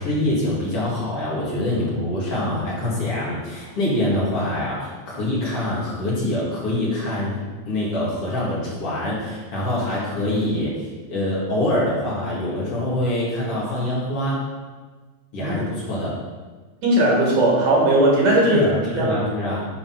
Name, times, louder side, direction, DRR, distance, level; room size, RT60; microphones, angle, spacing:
voice 1, 0.0-7.4 7.7-10.7 11.1-14.4 15.3-16.1 18.5-19.7, left 1 dB, 50° left, -7 dB, 3.0 m, -24 dB
voice 2, 16.8-18.7 18.9-19.2, right 1 dB, 65° right, -4 dB, 3.0 m, -17 dB
10.0 x 4.1 x 5.8 m, 1.3 s
omnidirectional pair, 3.4 m